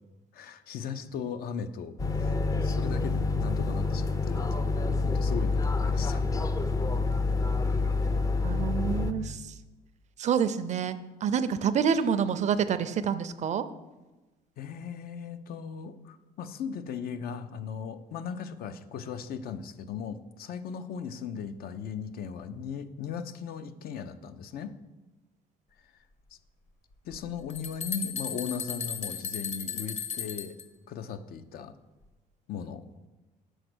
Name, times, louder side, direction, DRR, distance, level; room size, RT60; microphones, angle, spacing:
voice 1, 0.3-6.2 8.7-8.8 9.2-9.4 14.6-24.7 27.0-30.6 30.9-31.7 32.5-32.8, left 7 dB, 65° left, 11 dB, 0.6 m, -38 dB
sound 1, 2.0-9.1, left 3 dB, 20° left, 0.5 m, -27 dB
voice 2, 8.4-9.5 10.2-13.7, right 7 dB, 45° right, 12 dB, 0.5 m, -28 dB
sound 2, 27.1-27.2 27.5-30.6, left 7 dB, 40° left, 0.9 m, -35 dB
6.4 x 4.9 x 6.1 m, 1.1 s
cardioid pair, 110°, 17 cm